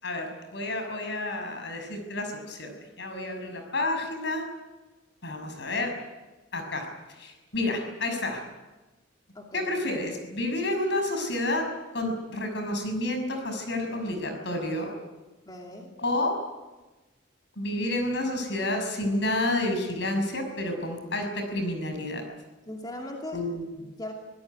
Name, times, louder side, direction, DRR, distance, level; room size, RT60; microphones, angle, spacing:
voice 1, 0.0-4.4 5.2-5.9 6.5-6.9 7.2-8.4 9.5-11.6 11.9-14.9 16.0-16.3 17.6-22.2 23.3-23.7, left 1 dB, 65° left, 5 dB, 6.2 m, -30 dB
voice 2, 9.3-9.7 15.5-15.9 22.7-23.4 23.8-24.1, left 1 dB, 20° left, 0 dB, 2.7 m, -39 dB
24.0 x 17.5 x 9.5 m, 1.1 s
head